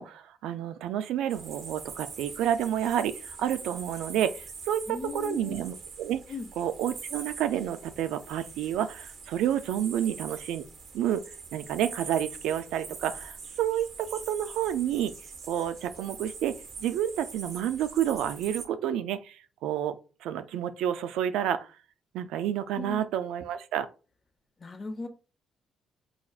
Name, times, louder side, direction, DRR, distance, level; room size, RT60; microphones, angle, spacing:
voice 1, 0.0-6.2 6.6-10.6 10.9-11.2 11.5-15.1 15.5-20.0 20.2-21.7 22.1-23.9, right 10 dB, 90° right, 0.3 m, -30 dB
sound 1, 1.3-18.7, right 5 dB, 55° right, 1.0 m, -44 dB
voice 2, 4.9-5.6 6.3-6.5 22.7-23.0 24.6-25.1, left 4 dB, 30° left, 0.8 m, -37 dB
5.5 x 2.3 x 2.3 m
cardioid pair, 90°, 0 cm